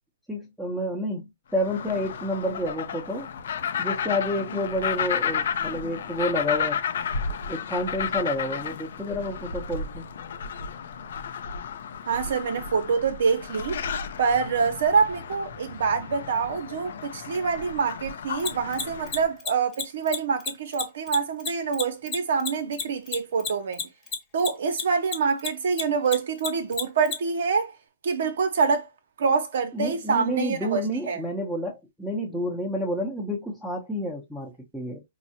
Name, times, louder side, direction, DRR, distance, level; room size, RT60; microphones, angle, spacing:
voice 1, 0.3-3.3 3.8-6.8 7.5-10.1 29.7-35.0, equal, ahead, 0.8 m, -29 dB
sound 1, 1.6-19.3, left 6 dB, 70° left, 0.6 m, -32 dB
voice 2, 12.1-13.8 14.2-23.8 24.3-27.7 28.0-28.9 29.2-31.2, right 5 dB, 70° right, 0.7 m, -26 dB
Mechanisms, 18.4-25.1 25.4-27.1, left 6 dB, 25° left, 1.1 m, -29 dB
4.5 x 2.1 x 2.8 m
hypercardioid pair, 135°, 0 cm